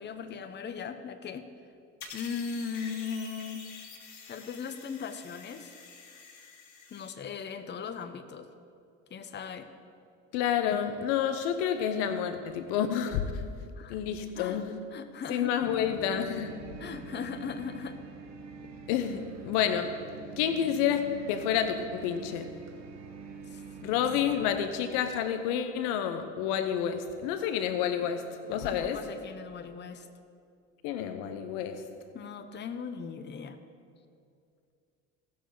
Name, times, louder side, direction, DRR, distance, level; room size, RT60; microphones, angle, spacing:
voice 1, 0.0-1.5 2.1-3.7 4.3-5.7 6.9-8.5 9.1-9.7 13.8-14.0 14.4-14.6 14.9-15.9 16.8-18.0 23.5-23.6 28.5-30.1 32.1-33.6, left 6 dB, 30° left, 9 dB, 0.8 m, -38 dB
sound 1, 2.0-7.1, left 4 dB, 50° left, 2.1 m, -48 dB
voice 2, 10.3-13.4 13.9-14.8 15.3-16.6 18.9-20.0 20.4-22.5 23.8-29.0 30.8-31.8, left 8 dB, 70° left, 9 dB, 0.9 m, -29 dB
sound 2, 15.6-24.6, right 5 dB, 45° right, 1.6 m, -45 dB
17.5 x 6.8 x 3.9 m, 2.4 s
hypercardioid pair, 75°, 36 cm